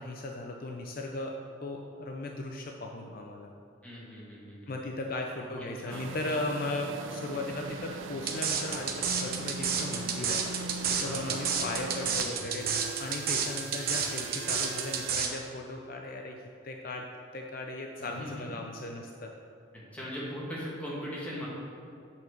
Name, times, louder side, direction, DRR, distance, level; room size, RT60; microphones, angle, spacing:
voice 1, 0.0-1.4 1.6-3.5 4.7-10.4 10.9-17.1 17.3-19.3, left 2 dB, 45° left, 2 dB, 0.5 m, -37 dB
voice 2, 3.8-4.8 5.4-6.1 11.0-11.6 18.0-18.5 19.9-21.5, equal, 5° left, -7 dB, 1.8 m, -40 dB
sound 1, 5.9-15.1, right 4 dB, 75° right, 0.4 m, -40 dB
sound 2, 8.3-15.3, right 6 dB, 50° right, 0.8 m, -30 dB
8.4 x 4.5 x 6.4 m, 2.7 s
head